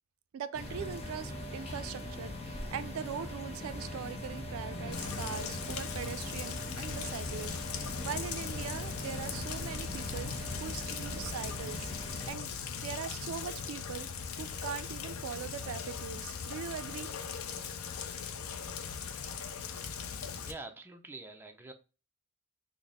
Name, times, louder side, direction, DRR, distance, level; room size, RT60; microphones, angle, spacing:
voice 1, 0.3-17.1, right 7 dB, 75° right, 0.3 m, -41 dB
sound 1, 0.5-12.3, left 1 dB, 30° left, 0.6 m, -41 dB
Rain, 4.9-20.5, left 6 dB, 85° left, 0.4 m, -39 dB
voice 2, 20.4-21.7, right 2 dB, 10° right, 0.4 m, -46 dB
3.9 x 2.0 x 3.4 m
head